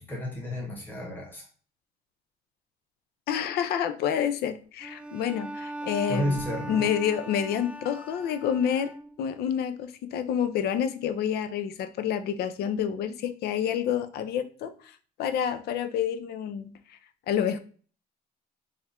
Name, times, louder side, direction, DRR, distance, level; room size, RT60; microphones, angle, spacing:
voice 1, 0.0-1.5 6.1-6.9, equal, 10° left, -2 dB, 1.2 m, -32 dB
voice 2, 3.3-6.4 6.7-8.9 9.2-14.7 15.2-17.0 17.3-17.6, left 8 dB, 70° left, 11 dB, 0.5 m, -28 dB
Bowed string instrument, 4.8-9.4, right 1 dB, 5° right, 0.4 m, -40 dB
3.5 x 2.4 x 4.2 m, 0.41 s
cardioid pair, 110°, 17 cm